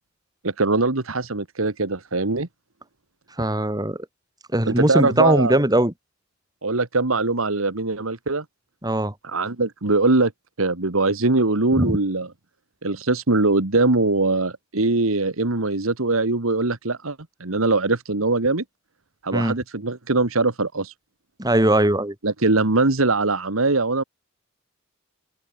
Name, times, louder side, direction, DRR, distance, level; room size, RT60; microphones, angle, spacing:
voice 1, 0.4-2.5 4.7-5.6 6.6-8.4 9.2-10.3 10.6-12.3 12.8-18.6 19.2-20.9 22.2-24.0, right 3 dB, 85° right, 1.8 m, -22 dB
voice 2, 3.4-4.0 4.5-5.9 8.8-9.1 11.8-12.0 19.3-19.6 21.4-22.1, right 1 dB, 20° right, 6.4 m, -20 dB
open air
head